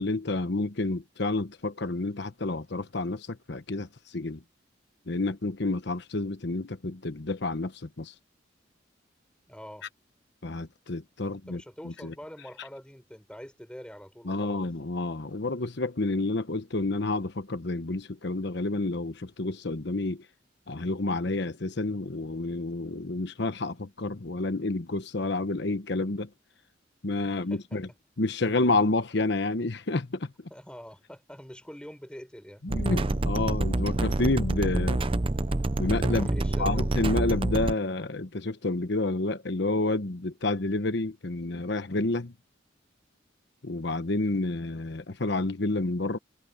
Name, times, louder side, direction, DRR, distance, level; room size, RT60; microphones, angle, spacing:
voice 1, 0.0-4.4 5.1-8.1 10.4-12.1 14.3-20.2 20.7-26.3 27.0-27.9 28.2-30.3 32.6-35.0 35.8-36.3 36.6-42.3 43.6-46.2, left 2 dB, 65° left, 1.1 m, -29 dB
voice 2, 9.5-9.9 11.2-14.6 27.3-27.8 30.5-32.6 36.1-36.9, equal, 5° left, 5.4 m, -45 dB
sound 1, 32.7-37.7, right 2 dB, 30° right, 0.7 m, -27 dB
head